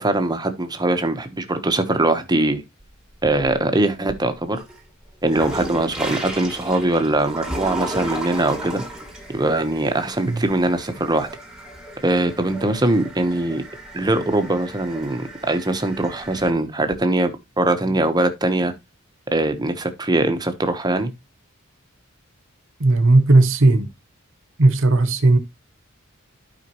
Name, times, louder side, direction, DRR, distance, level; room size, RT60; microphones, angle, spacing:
voice 1, 0.0-2.6 3.2-4.6 5.2-8.8 9.3-11.3 12.0-13.6 13.9-17.3 17.6-18.7 19.3-21.1, right 2 dB, 20° right, 1.1 m, -21 dB
sound 1, 2.8-3.8 4.2-16.5, right 1 dB, 5° right, 1.7 m, -35 dB
voice 2, 22.8-23.9 24.6-25.4, right 2 dB, 65° right, 1.0 m, -15 dB
12.0 x 5.1 x 3.0 m
head